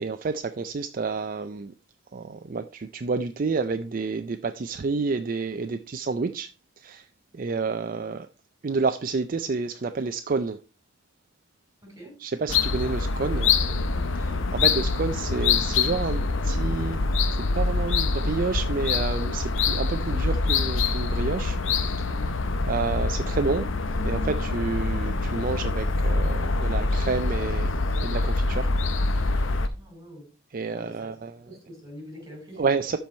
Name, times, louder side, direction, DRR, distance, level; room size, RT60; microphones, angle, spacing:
voice 1, 0.0-1.7 2.1-6.5 6.8-7.1 7.3-8.3 8.6-10.6 12.2-13.5 14.5-17.0 17.5-22.3 22.6-23.7 24.0-28.7 29.2-29.5 30.5-31.3 32.6-33.0, right 4 dB, 45° right, 0.4 m, -29 dB
voice 2, 11.8-12.2 13.6-14.5 29.7-30.3 30.7-33.0, equal, 15° right, 5.1 m, -45 dB
sound 1, 12.5-29.7, left 3 dB, 75° left, 0.8 m, -25 dB
12.5 x 4.6 x 4.3 m
head